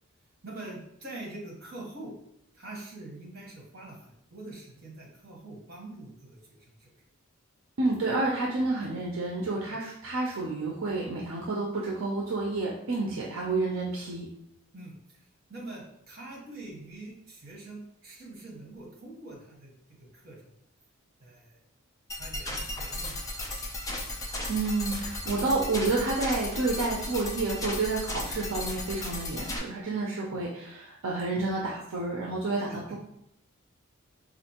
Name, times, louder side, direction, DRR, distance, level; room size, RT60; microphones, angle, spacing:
voice 1, 0.4-2.1 2.5-6.9 9.7-9.8 13.1-13.2 14.7-19.7 20.0-20.4 21.2-21.6 22.1-23.2 30.3-30.4 32.7-33.0, right 2 dB, 45° right, -3 dB, 1.1 m, -44 dB
voice 2, 7.8-14.3 24.5-32.9, right 3 dB, 70° right, -2 dB, 0.5 m, -30 dB
sound 1, 22.1-29.6, left 1 dB, 15° left, 0.4 m, -35 dB
4.3 x 2.5 x 2.8 m, 0.75 s
head